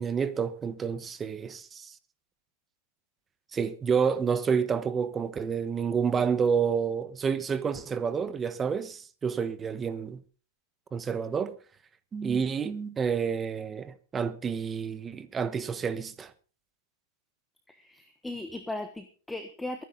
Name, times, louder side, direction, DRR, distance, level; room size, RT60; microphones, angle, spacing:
voice 1, 0.0-1.9 3.5-10.2 10.9-11.5 12.1-16.3, right 6 dB, 15° right, 1.1 m, -29 dB
voice 2, 17.7-19.8, left 2 dB, 5° left, 1.2 m, -37 dB
22.5 x 10.0 x 3.9 m
supercardioid pair, 155°, 0 cm